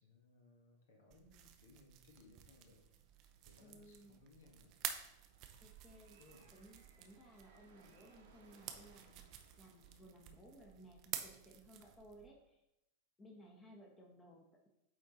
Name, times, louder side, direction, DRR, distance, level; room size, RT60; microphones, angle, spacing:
voice 1, 0.0-2.8 3.4-4.7 6.2-6.5, left 3 dB, 60° left, 1 dB, 1.5 m, -64 dB
sound 1, 1.1-12.3, right 10 dB, 40° right, 0.7 m, -51 dB
sound 2, 2.2-12.5, right 4 dB, 60° right, 1.2 m, -70 dB
voice 2, 3.6-4.2 5.6-6.2 6.5-9.2 9.6-12.6 13.2-14.7, equal, 15° left, 0 dB, 1.2 m, -60 dB
8.7 x 3.8 x 4.0 m, 0.85 s
figure-of-eight pair, 90°, 0 cm